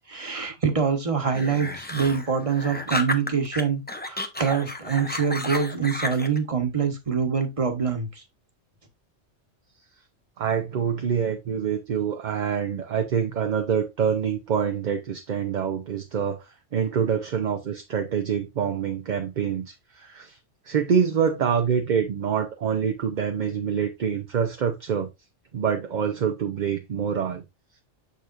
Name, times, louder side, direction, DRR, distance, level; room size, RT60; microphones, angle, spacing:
voice 1, 0.1-8.2, right 6 dB, 30° right, 1.2 m, -25 dB
sound 1, 1.3-3.6 3.9-6.4, left 2 dB, 10° left, 0.6 m, -31 dB
voice 2, 10.4-20.4 20.6-25.1 25.5-27.4, right 7 dB, 50° right, 0.7 m, -26 dB
6.7 x 6.4 x 2.5 m
omnidirectional pair, 1.2 m